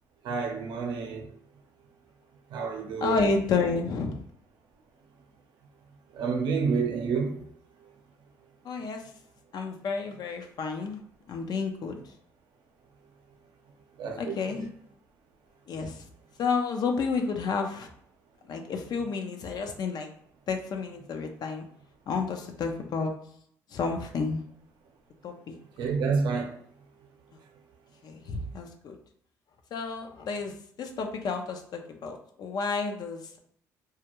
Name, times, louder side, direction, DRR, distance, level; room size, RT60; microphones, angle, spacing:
voice 1, 0.2-1.3 2.5-3.3 6.1-7.4 14.0-14.7 25.8-26.5, right 5 dB, 70° right, 0.6 m, -29 dB
voice 2, 3.0-4.2 8.6-9.0 9.5-11.0 11.3-12.0 14.2-14.7 15.7-16.0 16.4-17.9 18.5-20.1 20.5-21.7 22.1-23.1 23.7-24.4 25.2-25.6 28.0-29.0 29.7-33.4, left 4 dB, 60° left, 0.5 m, -30 dB
2.3 x 2.2 x 2.9 m
supercardioid pair, 70°, 8 cm